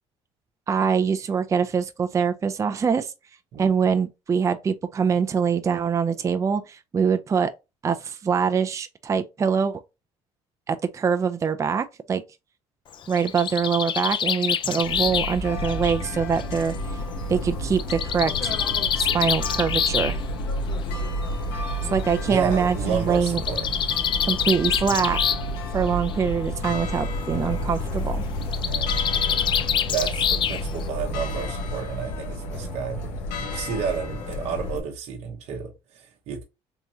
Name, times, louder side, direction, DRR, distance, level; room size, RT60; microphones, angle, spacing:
voice 1, 0.7-3.1 3.6-7.5 7.8-9.8 10.7-12.2 13.1-16.7 17.3-18.5 19.0-20.2 21.8-23.4 24.2-25.2 25.7-28.2, right 6 dB, 25° right, 0.4 m, -24 dB
Bird, 12.9-16.7 17.8-20.1 21.2-21.3 21.7-21.8 22.0-22.1 23.1-25.6 25.9-26.3 28.4-30.8, left 8 dB, 45° left, 0.4 m, -26 dB
sound 1, 14.8-34.8, left 1 dB, 90° left, 0.9 m, -30 dB
voice 2, 22.3-23.7 28.6-29.0 29.9-33.1 33.4-36.4, right 7 dB, 65° right, 0.8 m, -31 dB
3.5 x 2.9 x 2.7 m
supercardioid pair, 90°, 12 cm